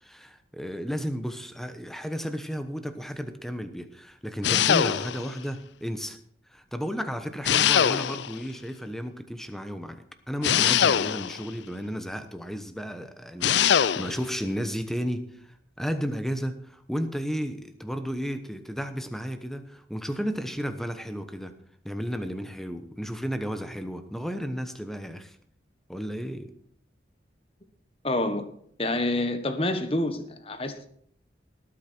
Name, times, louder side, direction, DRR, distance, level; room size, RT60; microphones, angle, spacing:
voice 1, 0.0-6.2 6.5-21.5 21.8-25.4 25.9-26.5, equal, ahead, 1.0 m, -33 dB
sound 1, 4.4-5.3 7.5-8.4 10.4-11.5 13.4-14.2, left 9 dB, 70° left, 0.4 m, -22 dB
voice 2, 28.0-28.5 28.8-30.9, left 1 dB, 30° left, 1.3 m, -27 dB
19.0 x 8.6 x 4.5 m
head